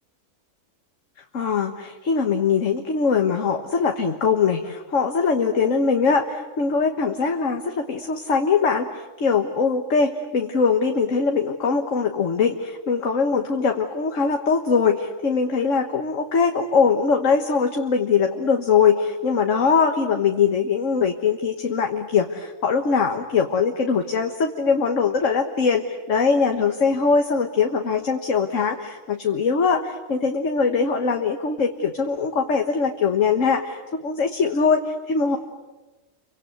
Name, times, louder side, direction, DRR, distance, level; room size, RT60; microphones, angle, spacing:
voice 1, 1.3-35.4, left 5 dB, 55° left, 4 dB, 1.7 m, -22 dB
29.5 x 24.5 x 8.1 m, 1.2 s
omnidirectional pair, 1.6 m